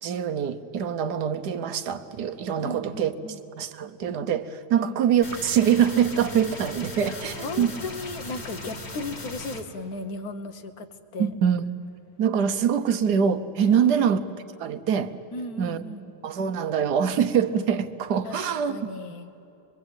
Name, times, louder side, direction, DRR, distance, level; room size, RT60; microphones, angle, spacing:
voice 1, 0.0-3.1 3.6-7.7 11.2-11.6 12.2-14.2 14.6-15.1 15.6-15.8 16.2-18.8, right 8 dB, 60° right, 10 dB, 1.3 m, -24 dB
voice 2, 2.6-3.4 4.8-5.0 7.0-10.9 11.1-11.3 12.7-12.9 13.7-14.1 15.3-16.1 18.2-19.3, left 2 dB, 50° left, 9 dB, 1.5 m, -36 dB
sound 1, 5.2-9.6, left 2 dB, 30° left, 2.0 m, -38 dB
25.0 x 23.5 x 8.9 m, 2.8 s
omnidirectional pair, 2.3 m